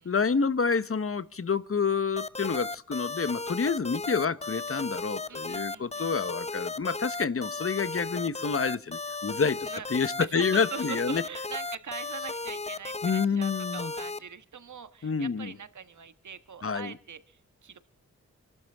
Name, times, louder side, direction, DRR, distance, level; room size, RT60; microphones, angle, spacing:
voice 1, 0.0-9.6 9.9-11.2 13.0-13.9 15.0-15.5 16.6-16.9, left 5 dB, 50° left, 1.1 m, -28 dB
sound 1, 2.2-14.2, left 3 dB, 20° left, 0.9 m, -35 dB
voice 2, 5.3-6.1 9.6-9.9 10.2-17.8, right 7 dB, 75° right, 1.5 m, -42 dB
27.5 x 12.0 x 3.6 m
cardioid pair, 50°, 30 cm